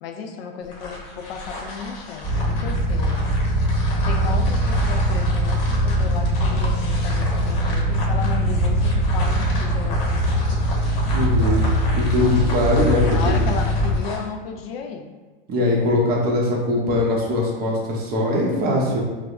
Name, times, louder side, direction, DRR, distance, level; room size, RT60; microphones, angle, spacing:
voice 1, 0.0-3.3 4.0-10.6 13.0-15.1, left 5 dB, 80° left, 4 dB, 0.5 m, -34 dB
sound 1, 0.6-14.3, left 2 dB, 50° left, 0.8 m, -34 dB
sound 2, 2.2-14.0, equal, 5° right, 1.5 m, -21 dB
voice 2, 11.1-11.6 11.9-13.3 15.5-19.0, left 1 dB, 30° right, -2 dB, 0.8 m, -21 dB
4.8 x 2.0 x 2.4 m, 1.3 s
supercardioid pair, 130°, 29 cm